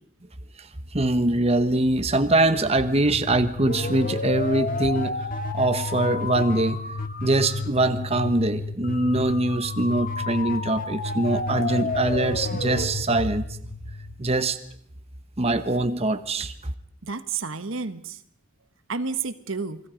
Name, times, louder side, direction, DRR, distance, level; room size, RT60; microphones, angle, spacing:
voice 1, 0.9-5.3 5.5-6.8 7.2-13.4 14.2-14.6 15.4-16.5, right 2 dB, 30° right, 9 dB, 1.1 m, -23 dB
sound 1, 2.6-14.5, left 3 dB, 40° left, 1.9 m, -31 dB
voice 2, 17.0-18.2 18.9-19.8, right 5 dB, 70° right, 11 dB, 1.3 m, -30 dB
29.0 x 22.5 x 5.2 m, 0.70 s
head